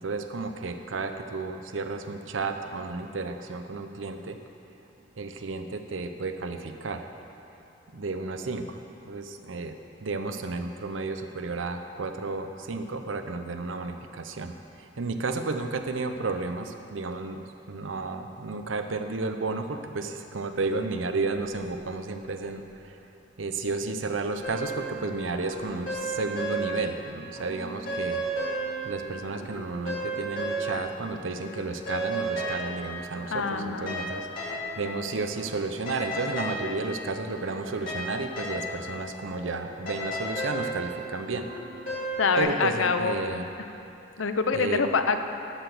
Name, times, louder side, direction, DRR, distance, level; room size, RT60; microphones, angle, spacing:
voice 1, 0.0-4.4 5.2-7.0 7.9-8.8 9.1-23.0 23.4-28.2 28.8-41.5 42.4-43.5 44.5-44.8, right 3 dB, 85° right, 7 dB, 0.7 m, -32 dB
sound 1, 24.4-27.0 27.4-31.1 31.4-42.4, right 1 dB, 45° left, 2.7 m, -34 dB
voice 2, 33.3-34.0 42.2-43.2 44.2-45.2, left 5 dB, 90° left, 7 dB, 0.7 m, -25 dB
12.5 x 6.0 x 6.9 m, 2.9 s
head